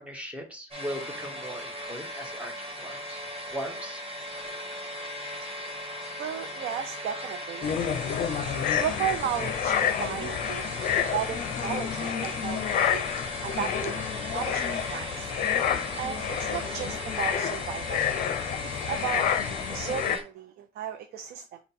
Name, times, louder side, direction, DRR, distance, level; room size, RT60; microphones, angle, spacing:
voice 1, 0.0-3.2 3.5-4.0, equal, 5° right, 1.1 m, -39 dB
sound 1, 0.7-20.2, left 1 dB, 35° right, 1.5 m, -38 dB
voice 2, 6.2-8.2 8.8-10.7 11.1-13.0 13.4-14.0 14.3-15.3 16.0-18.0 18.7-19.3 19.7-21.6, right 9 dB, 65° right, 0.5 m, -34 dB
sound 2, 7.6-20.2, left 8 dB, 55° left, 0.6 m, -29 dB
5.1 x 2.2 x 4.2 m
cardioid pair, 110°, 17 cm